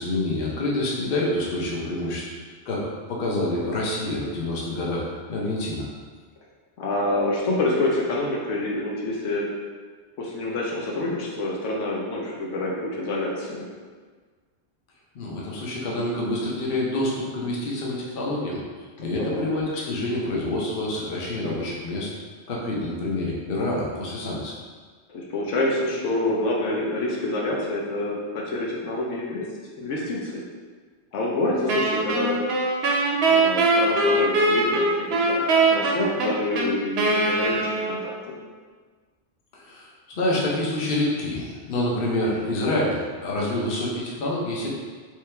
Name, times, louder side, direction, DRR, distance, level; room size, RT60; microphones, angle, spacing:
voice 1, 0.0-2.2 2.7-5.9 15.1-18.6 19.0-22.1 22.5-24.5 39.5-39.9 40.2-44.7, left 1 dB, 55° left, -4 dB, 0.9 m, -27 dB
voice 2, 6.8-9.5 10.2-13.7 19.2-19.4 25.1-29.5 29.8-30.4 31.1-32.4 33.2-38.1, left 2 dB, 80° left, -3 dB, 1.0 m, -27 dB
Wind instrument woodwind instrument, 31.7-38.3, right 2 dB, 65° right, 0.7 m, -22 dB
3.5 x 3.2 x 3.3 m, 1.5 s
omnidirectional pair, 1.2 m